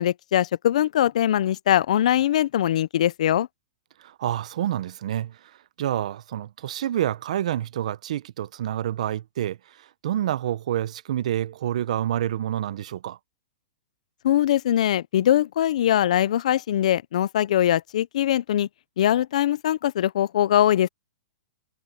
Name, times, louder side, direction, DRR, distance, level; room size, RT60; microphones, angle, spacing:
voice 1, 0.0-3.5 14.2-18.7 19.0-20.9, left 11 dB, 65° left, 0.6 m, -22 dB
voice 2, 4.0-13.2, right 11 dB, 65° right, 0.7 m, -28 dB
hypercardioid pair, 160°, 4 cm